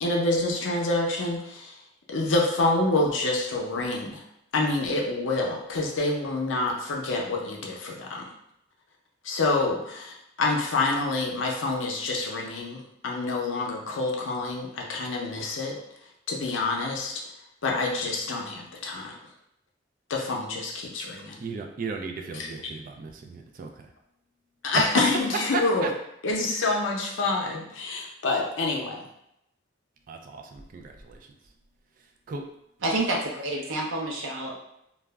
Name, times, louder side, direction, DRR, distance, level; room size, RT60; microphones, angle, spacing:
voice 1, 0.0-1.8 2.1-4.2 4.5-8.2 9.2-15.8 16.3-17.1 17.6-19.1 20.1-21.4 22.3-22.5 24.6-25.9 26.2-29.0, left 2 dB, 80° left, -1 dB, 0.5 m, -27 dB
voice 2, 21.4-23.9 24.7-25.9 30.1-31.5 32.0-32.5, right 4 dB, 45° right, 4 dB, 0.3 m, -34 dB
voice 3, 32.8-34.6, right 2 dB, 80° right, -2 dB, 0.6 m, -28 dB
2.3 x 2.0 x 3.4 m, 0.80 s
head